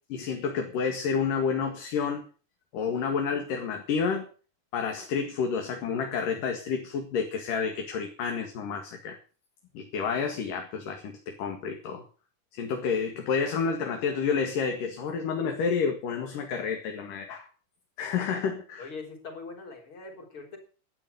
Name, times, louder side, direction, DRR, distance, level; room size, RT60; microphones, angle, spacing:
voice 1, 0.1-2.3 2.7-4.3 4.7-9.2 9.8-12.0 12.5-17.5 18.0-18.9, left 6 dB, 80° left, 3 dB, 3.5 m, -29 dB
voice 2, 18.8-20.6, left 4 dB, 40° left, 2 dB, 4.7 m, -42 dB
12.0 x 9.5 x 6.9 m, 0.37 s
omnidirectional pair, 3.8 m